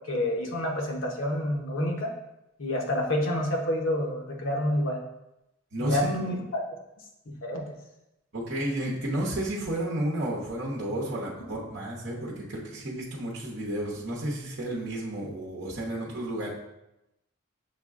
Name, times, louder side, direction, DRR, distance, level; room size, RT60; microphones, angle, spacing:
voice 1, 0.1-2.1 2.6-5.0 5.8-6.6 7.3-7.6, left 1 dB, 70° left, 1 dB, 0.8 m, -28 dB
voice 2, 5.7-6.3 8.3-16.5, right 1 dB, 55° right, -5 dB, 0.9 m, -32 dB
6.5 x 2.2 x 3.6 m, 0.89 s
head